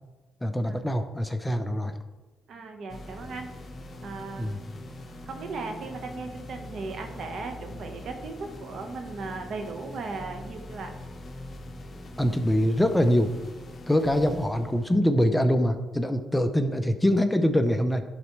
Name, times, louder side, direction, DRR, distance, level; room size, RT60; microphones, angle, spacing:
voice 1, 0.4-1.9 4.4-4.6 12.2-13.3 13.9-18.0, equal, 10° left, 7 dB, 0.5 m, -24 dB
voice 2, 2.5-3.5 4.0-4.6 5.2-10.9, right 3 dB, 60° right, 5 dB, 1.1 m, -37 dB
sound 1, 2.9-15.0, left 1 dB, 40° left, 1.0 m, -43 dB
11.5 x 4.0 x 3.1 m, 1.2 s
cardioid pair, 90°, 0 cm